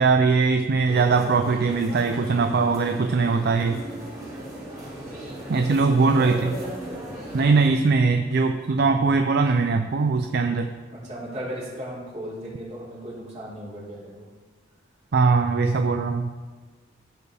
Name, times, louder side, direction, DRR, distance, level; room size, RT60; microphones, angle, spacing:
voice 1, 0.0-3.8 5.5-6.5 7.3-10.7 15.1-16.3, right 4 dB, 55° right, 6 dB, 0.4 m, -21 dB
sound 1, 0.8-7.7, right 1 dB, 20° right, 2.6 m, -37 dB
voice 2, 5.7-7.2 11.0-14.3, equal, 35° right, -6 dB, 3.2 m, -36 dB
14.5 x 6.7 x 3.4 m, 1.4 s
head